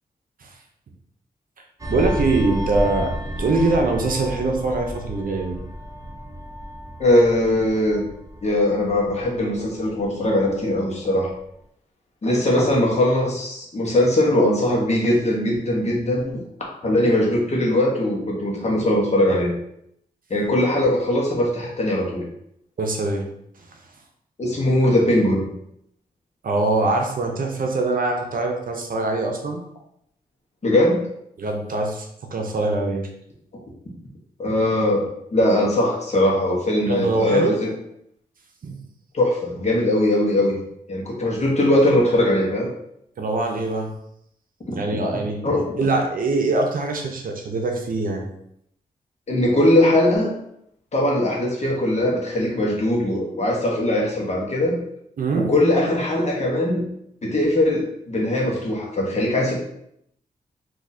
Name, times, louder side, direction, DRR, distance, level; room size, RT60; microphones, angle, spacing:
sound 1, 1.8-10.8 11.2-11.4, equal, 20° right, 0.7 m, -32 dB
voice 1, 1.9-5.6 22.8-23.3 26.4-29.6 31.4-32.1 32.3-33.1 36.8-37.6 38.6-38.8 43.2-43.9 44.7-45.4 45.8-48.3 55.2-55.5, right 2 dB, 65° right, 2 dB, 0.7 m, -23 dB
voice 2, 7.0-8.0 8.4-11.3 12.2-16.4 16.8-19.5 20.3-22.2 24.4-25.5 30.6-31.0 34.4-35.0 35.3-37.7 39.1-40.5 40.9-42.7 44.7-44.8 45.4-45.7 49.3-50.3 50.9-54.8 55.3-56.8 57.2-59.6, left 1 dB, 45° left, -2 dB, 1.1 m, -20 dB
3.9 x 2.7 x 2.7 m, 0.74 s
cardioid pair, 75°, 16 cm